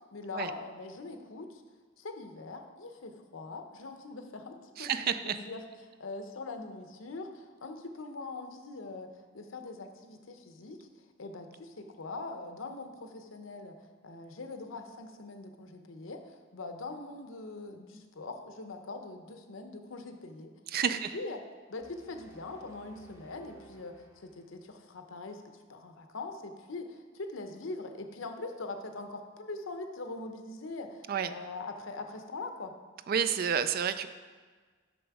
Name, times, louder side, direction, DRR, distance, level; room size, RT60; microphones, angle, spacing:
voice 1, 0.1-1.6 2.0-5.6 6.0-13.8 14.0-20.5 20.9-21.4 21.7-25.4 25.7-32.7, left 3 dB, 90° left, 6 dB, 0.8 m, -42 dB
voice 2, 4.8-5.4 20.7-21.2 31.1-31.3 33.1-34.1, right 7 dB, 50° right, 11 dB, 0.4 m, -30 dB
sound 1, 21.8-25.0, right 1 dB, 15° right, 0.9 m, -58 dB
7.1 x 6.1 x 4.8 m, 1.5 s
head